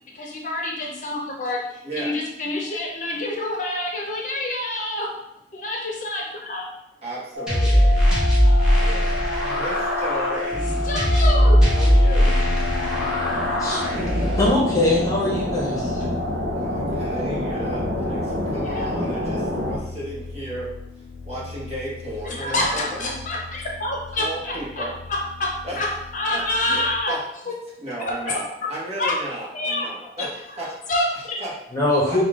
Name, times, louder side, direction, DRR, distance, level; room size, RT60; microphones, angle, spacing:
voice 1, 0.1-5.1 5.5-6.6 7.6-8.9 10.8-11.6 18.6-18.9 22.2-25.5 25.8-25.9 26.1-27.2 27.5-27.6 28.3-28.4 29.0-29.1 29.5-29.9 30.2-30.3 30.9-31.4, left 1 dB, 45° left, -1 dB, 0.8 m, -27 dB
voice 2, 1.8-2.1 7.0-7.9 8.8-9.1 9.6-10.5 11.7-12.3 16.5-20.7 21.2-23.2 24.2-24.9 25.6-25.8 26.3-27.2 27.8-30.7 31.4-31.5 32.1-32.2, right 1 dB, 35° right, -6 dB, 1.4 m, -34 dB
sound 1, 7.3-19.8, left 1 dB, 60° right, 0.7 m, -28 dB
sound 2, 7.5-14.5, equal, 5° right, 1.2 m, -19 dB
sound 3, 12.2-27.0, left 3 dB, 80° left, 0.4 m, -37 dB
voice 3, 14.4-16.0 31.7-32.2, left 2 dB, 20° left, -4 dB, 1.0 m, -21 dB
5.5 x 2.4 x 3.7 m, 0.81 s
head